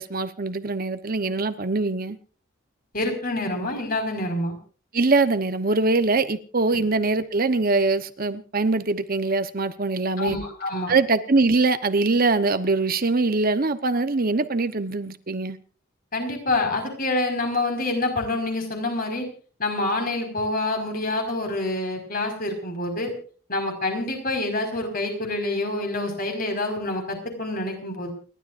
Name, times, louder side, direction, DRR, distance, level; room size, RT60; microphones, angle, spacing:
voice 1, 0.0-2.2 4.9-10.4 10.9-15.6, right 3 dB, 45° right, 1.0 m, -23 dB
voice 2, 2.9-4.6 6.7-6.8 10.2-10.9 16.1-19.3 19.6-23.1 23.5-28.1, left 2 dB, 45° left, 5.1 m, -27 dB
29.5 x 12.5 x 2.5 m
head